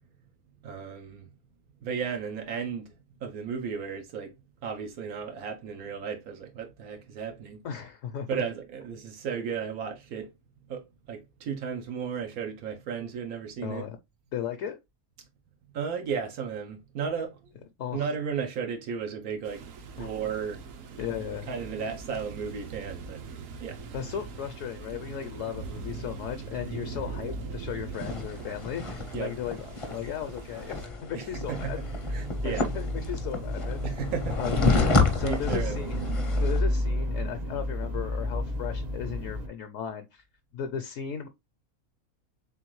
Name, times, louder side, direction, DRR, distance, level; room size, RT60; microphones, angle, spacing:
voice 1, 0.6-1.3 1.8-2.9 3.2-4.3 4.6-7.6 8.3-10.3 10.7-10.8 11.1-13.8 15.7-17.5 17.9-19.6 20.0-20.6 21.5-23.2 23.6-23.8 29.1-29.3 31.1-31.8 32.1-32.7 33.8-34.4 35.2-35.8, right 6 dB, 90° right, 1.3 m, -34 dB
voice 2, 7.6-8.3 13.6-14.0 14.3-14.8 17.8-18.1 20.0-20.1 21.0-21.5 23.9-31.8 32.4-33.9 34.4-34.6 35.2-36.0 36.4-40.3 40.5-41.3, left 9 dB, 70° left, 0.9 m, -36 dB
sound 1, 19.4-30.9, right 4 dB, 70° right, 1.1 m, -41 dB
sound 2, 27.9-36.6, left 3 dB, 35° left, 0.5 m, -30 dB
sound 3, 31.3-39.5, left 1 dB, 40° right, 0.7 m, -31 dB
3.8 x 3.7 x 3.0 m
omnidirectional pair, 1.5 m